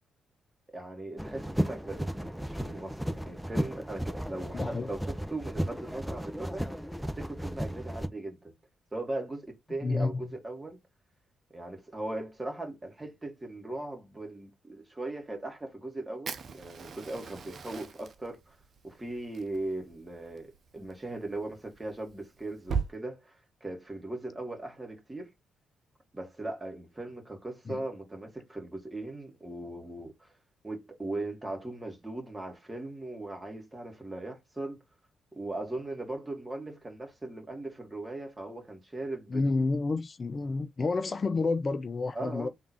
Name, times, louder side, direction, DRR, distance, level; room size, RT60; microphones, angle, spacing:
voice 1, 0.7-6.6 7.0-8.6 8.9-10.8 11.5-18.6 18.8-25.3 26.1-30.3 30.6-34.8 35.3-39.7 42.1-42.5, right 2 dB, 25° right, 2.2 m, -39 dB
sound 1, 1.2-8.1, equal, 5° right, 1.0 m, -34 dB
voice 2, 4.5-4.9 9.8-10.2 27.7-27.8 39.3-42.5, left 3 dB, 40° left, 0.4 m, -29 dB
Fire, 16.3-22.9, right 6 dB, 55° right, 0.7 m, -40 dB
3.6 x 2.6 x 4.6 m
hypercardioid pair, 40°, 0 cm